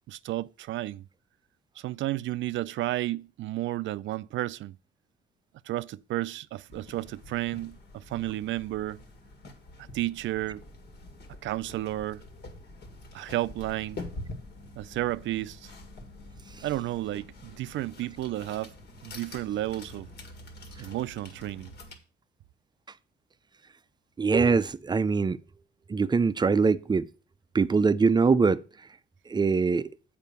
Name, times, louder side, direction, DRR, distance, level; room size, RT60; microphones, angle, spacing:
voice 1, 0.1-1.0 1.8-4.8 5.7-9.0 9.9-10.6 11.4-12.2 13.1-14.0 14.8-15.7 16.6-18.7 19.0-20.1 20.8-21.7, right 15 dB, 75° right, 0.4 m, -32 dB
sound 1, 6.7-22.0, left 2 dB, 60° left, 1.8 m, -46 dB
voice 2, 24.2-25.4 25.9-27.1 27.5-28.6 29.3-29.9, right 4 dB, 20° right, 0.5 m, -23 dB
7.4 x 5.1 x 6.7 m
cardioid pair, 90°, 20 cm